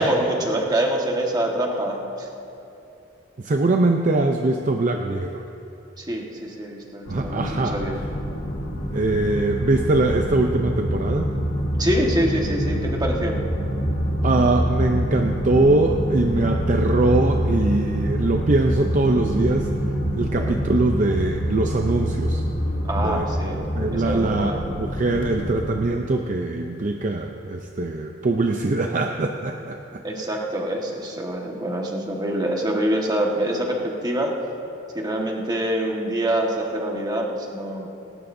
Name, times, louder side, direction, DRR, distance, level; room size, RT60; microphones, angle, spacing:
voice 1, 0.0-2.3 6.0-8.0 11.8-13.4 20.3-20.5 22.8-23.6 23.9-24.6 30.0-34.3 34.9-37.9, right 1 dB, 20° right, -1 dB, 1.5 m, -25 dB
voice 2, 3.4-5.4 7.1-7.8 8.9-11.3 14.2-19.7 20.1-22.4 23.0-23.2 23.7-24.5 24.8-30.0, right 2 dB, 40° right, 3 dB, 0.6 m, -22 dB
sound 1, 7.0-25.8, equal, 70° left, 2.1 m, -26 dB
18.5 x 18.0 x 2.7 m, 2.8 s
head